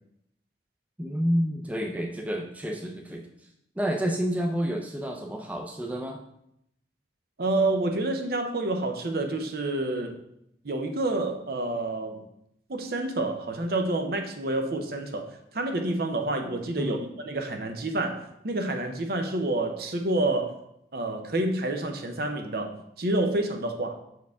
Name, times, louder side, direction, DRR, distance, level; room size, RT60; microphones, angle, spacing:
voice 1, 1.0-3.3 3.8-6.2 16.8-17.0, equal, 10° right, 1 dB, 0.5 m, -29 dB
voice 2, 7.4-10.2 10.6-12.2 12.7-15.3 15.5-20.6 20.9-23.9, right 2 dB, 55° right, 5 dB, 0.7 m, -28 dB
6.3 x 4.6 x 3.5 m, 0.77 s
head